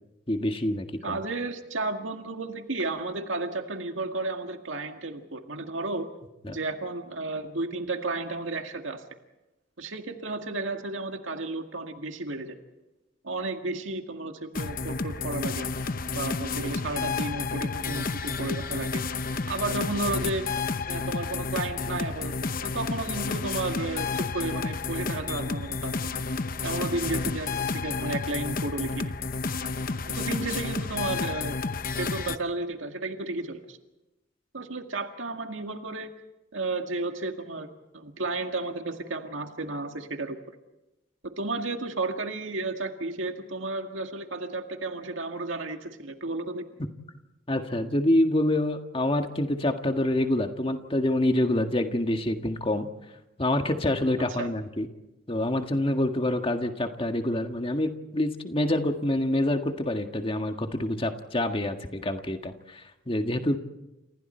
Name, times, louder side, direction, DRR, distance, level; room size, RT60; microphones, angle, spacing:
voice 1, 0.3-1.2 6.4-6.6 47.5-52.9 53.4-54.9 55.3-63.6, left 1 dB, 25° left, 6 dB, 1.7 m, -26 dB
voice 2, 1.0-6.1 6.4-9.0 9.8-12.5 13.2-15.7 16.1-19.0 19.5-20.5 20.9-26.2 26.6-29.1 30.1-31.6 32.0-33.8 34.5-36.1 36.5-40.4 41.2-46.6 54.3-54.5, right 2 dB, 75° right, 5 dB, 1.9 m, -33 dB
sound 1, 14.5-32.4, left 4 dB, 45° left, 0.9 m, -31 dB
30.0 x 28.5 x 4.5 m, 0.97 s
head